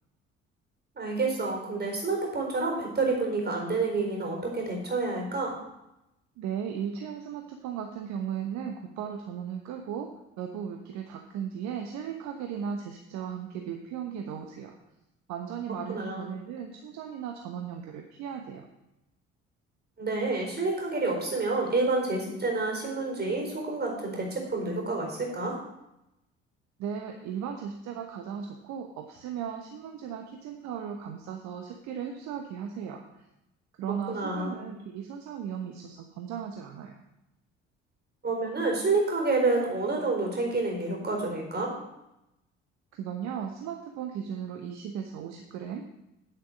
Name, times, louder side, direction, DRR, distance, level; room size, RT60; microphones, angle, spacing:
voice 1, 1.0-5.5 15.9-16.3 20.0-25.6 34.1-34.6 38.2-41.7, right 3 dB, 30° right, 1 dB, 4.4 m, -28 dB
voice 2, 6.4-10.1 10.4-14.7 15.3-18.7 26.8-33.0 33.7-37.0 42.9-45.9, right 8 dB, 55° right, 4 dB, 1.1 m, -36 dB
9.1 x 7.5 x 6.3 m, 0.90 s
figure-of-eight pair, 50°, 35 cm